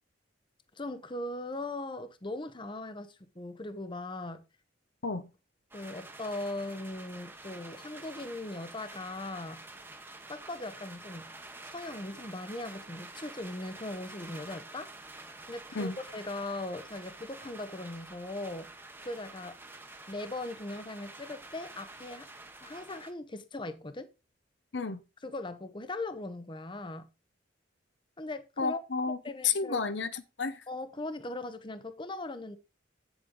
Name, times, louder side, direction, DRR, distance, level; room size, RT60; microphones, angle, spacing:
voice 1, 0.7-4.4 5.7-9.6 10.3-11.3 11.6-14.9 15.5-18.7 19.0-19.5 20.1-22.3 22.6-24.1 25.2-27.1 28.2-28.8 29.2-29.8 30.7-32.6, left 2 dB, 25° left, 0.8 m, -39 dB
sound 1, 5.7-23.1, right 2 dB, 10° right, 1.0 m, -48 dB
voice 2, 28.6-29.2 29.4-30.6, left 5 dB, 65° left, 0.8 m, -31 dB
8.7 x 8.0 x 3.8 m
head